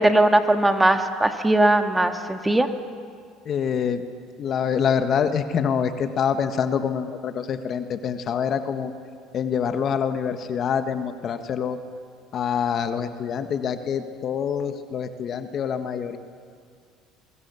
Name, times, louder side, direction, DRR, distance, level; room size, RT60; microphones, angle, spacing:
voice 1, 0.0-2.7, right 1 dB, 10° right, 6 dB, 1.8 m, -19 dB
voice 2, 3.4-4.0 4.4-8.9 9.3-11.8 12.3-16.2, left 7 dB, 50° left, 8 dB, 1.6 m, -26 dB
23.5 x 22.5 x 7.1 m, 2.2 s
supercardioid pair, 90°, 0 cm